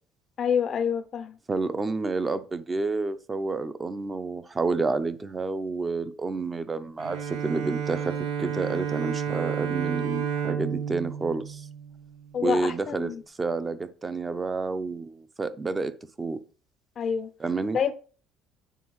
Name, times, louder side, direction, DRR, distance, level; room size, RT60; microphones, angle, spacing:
voice 1, 0.4-1.4 12.3-13.2 17.0-17.3 17.7-17.9, left 7 dB, 45° left, 0.4 m, -27 dB
voice 2, 1.5-11.7 12.4-13.1 13.4-15.9 16.2-16.4 17.4-17.8, right 3 dB, 25° right, 0.6 m, -29 dB
Bowed string instrument, 7.0-12.4, right 7 dB, 90° right, 0.8 m, -31 dB
9.2 x 3.9 x 3.1 m
cardioid pair, 105°, 0 cm